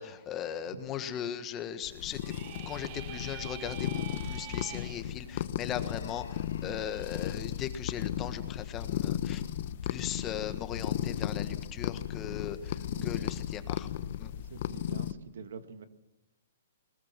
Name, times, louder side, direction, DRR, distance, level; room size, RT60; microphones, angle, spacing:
voice 1, 0.0-2.2 2.7-9.4 9.8-13.9 14.2-14.3, left 9 dB, 20° left, 1.5 m, -38 dB
sound 1, 1.8-15.1, left 11 dB, 50° left, 1.0 m, -35 dB
sound 2, 2.1-5.0, right 12 dB, 35° right, 1.2 m, -45 dB
Human voice, 5.8-7.7, left 7 dB, 75° left, 2.0 m, -51 dB
voice 2, 12.7-13.3 14.5-15.9, right 5 dB, 70° right, 1.9 m, -46 dB
20.5 x 20.0 x 7.5 m
hypercardioid pair, 155°, 0 cm